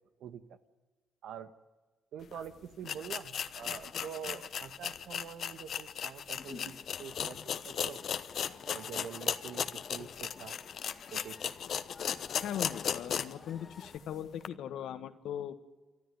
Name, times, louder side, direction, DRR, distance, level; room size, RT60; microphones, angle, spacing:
voice 1, 0.2-0.6 1.2-1.5 2.1-7.4 7.6-8.0 8.6-10.6 11.1-11.5, right 8 dB, 75° right, 12 dB, 1.4 m, -45 dB
sound 1, 2.3-2.4 2.8-13.4 13.8-13.9 14.4-14.5, left 8 dB, 60° left, 1.1 m, -37 dB
Cheering / Crowd, 6.4-14.0, left 5 dB, 40° left, 2.2 m, -54 dB
voice 2, 12.4-15.6, left 9 dB, 80° left, 11 dB, 1.7 m, -39 dB
29.5 x 13.0 x 9.5 m, 1.3 s
cardioid pair, 90°, 0 cm